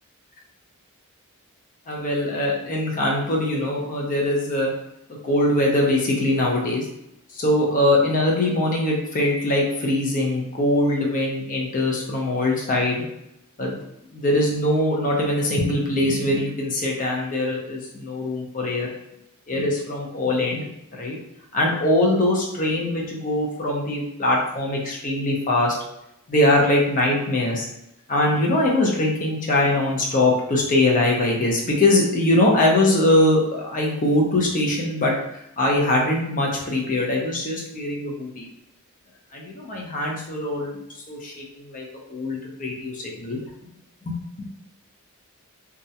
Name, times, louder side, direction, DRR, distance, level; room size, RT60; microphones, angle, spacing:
voice 1, 1.9-4.7 5.2-6.8 7.3-13.0 13.6-13.8 14.1-18.9 19.5-21.2 21.5-25.7 26.3-27.7 28.1-35.1 35.6-38.5 39.3-40.7 41.1-43.4 44.0-44.2, left 1 dB, 35° left, -1 dB, 0.5 m, -22 dB
2.3 x 2.1 x 2.7 m, 0.82 s
head